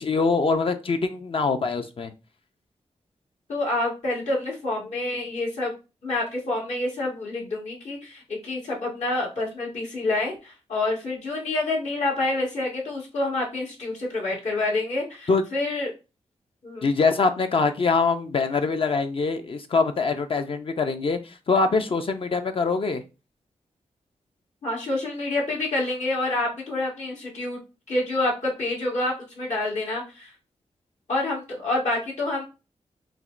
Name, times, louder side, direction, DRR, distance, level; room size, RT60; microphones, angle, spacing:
voice 1, 0.0-2.1 15.3-15.4 16.8-23.0, left 4 dB, 50° left, 7 dB, 0.5 m, -23 dB
voice 2, 3.5-5.7 6.0-15.9 16.6-16.9 24.6-27.6 27.9-30.3 31.1-32.4, left 2 dB, 75° left, -3 dB, 1.8 m, -27 dB
5.8 x 2.1 x 2.5 m, 0.30 s
cardioid pair, 75°, 12 cm